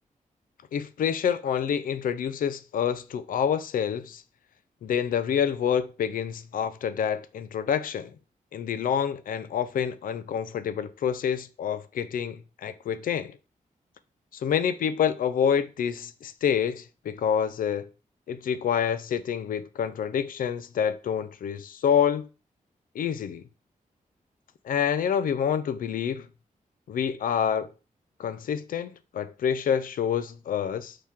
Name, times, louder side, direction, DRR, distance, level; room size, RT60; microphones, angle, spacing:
voice 1, 0.7-4.2 4.8-8.1 8.5-13.4 14.3-17.9 18.3-22.3 22.9-23.4 24.6-26.3 26.9-27.7 28.2-31.0, left 8 dB, 85° left, 0.4 m, -27 dB
4.5 x 3.0 x 3.5 m
wide cardioid pair, 105°, 14 cm